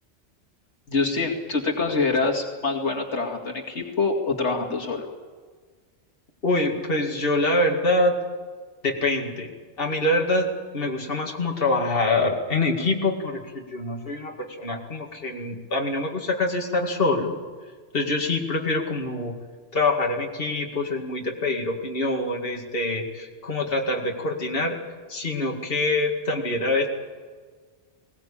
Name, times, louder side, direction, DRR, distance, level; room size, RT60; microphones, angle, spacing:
voice 1, 0.9-5.1, left 3 dB, 75° left, 1 dB, 2.6 m, -25 dB
voice 2, 6.4-8.2 8.8-9.5 9.8-17.4 17.9-19.3 19.7-24.8 25.1-26.9, left 2 dB, 50° left, 0 dB, 2.5 m, -25 dB
20.5 x 19.0 x 8.6 m, 1.5 s
omnidirectional pair, 1.2 m